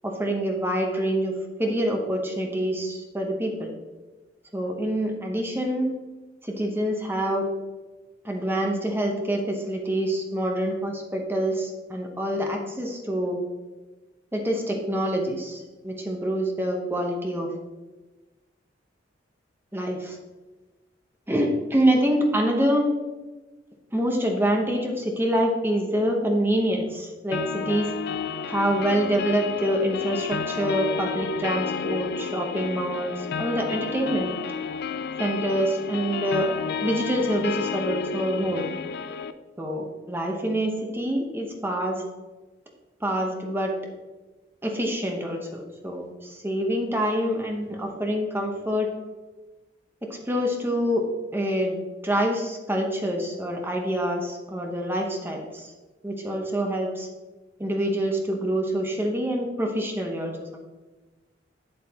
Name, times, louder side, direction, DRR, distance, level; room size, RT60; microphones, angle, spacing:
voice 1, 0.0-1.3 1.6-3.7 4.5-5.9 6.4-7.5 8.2-13.4 14.3-17.5 19.7-20.2 21.3-22.9 23.9-27.9 28.5-34.3 35.2-36.5 36.8-38.7 39.6-42.0 43.0-43.7 44.6-48.9 50.0-51.0 51.3-51.8 52.0-55.7 56.0-57.1 57.6-60.7, equal, 10° right, 1 dB, 0.9 m, -26 dB
sound 1, 27.3-39.3, left 6 dB, 55° left, 0.4 m, -31 dB
8.1 x 7.7 x 2.9 m, 1.2 s
head